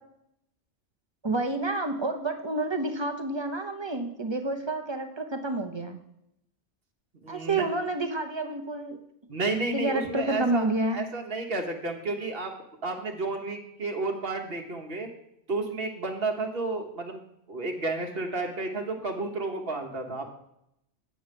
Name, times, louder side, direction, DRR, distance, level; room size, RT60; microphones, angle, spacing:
voice 1, 1.2-6.0 7.3-9.0 9.7-11.0, right 2 dB, 25° right, 5 dB, 0.8 m, -29 dB
voice 2, 7.2-7.6 9.3-12.5 12.8-15.1 15.5-17.2 17.5-20.3, right 3 dB, 55° right, 3 dB, 1.3 m, -31 dB
8.9 x 7.0 x 5.2 m, 0.79 s
omnidirectional pair, 1.2 m